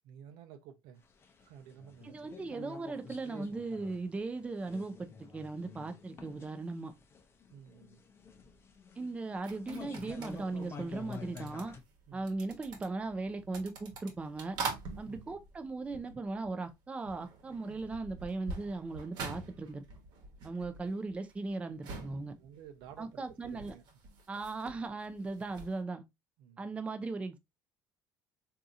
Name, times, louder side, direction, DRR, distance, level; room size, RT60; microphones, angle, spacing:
voice 1, 0.0-1.0 1.4-2.5 7.5-8.0 12.1-12.3 15.0-15.2 22.4-24.0 26.4-26.8, right 9 dB, 85° right, 0.6 m, -53 dB
sound 1, 1.1-11.8, left 5 dB, 30° left, 0.6 m, -49 dB
voice 2, 2.0-6.9 9.0-11.7 12.1-14.6 15.0-19.8 20.4-22.3 23.0-23.7 24.3-26.0 26.6-27.4, right 3 dB, 15° right, 0.4 m, -38 dB
sound 2, 9.4-16.7 17.0-25.8, right 4 dB, 65° right, 1.1 m, -45 dB
3.6 x 2.7 x 2.5 m
cardioid pair, 120°, 8 cm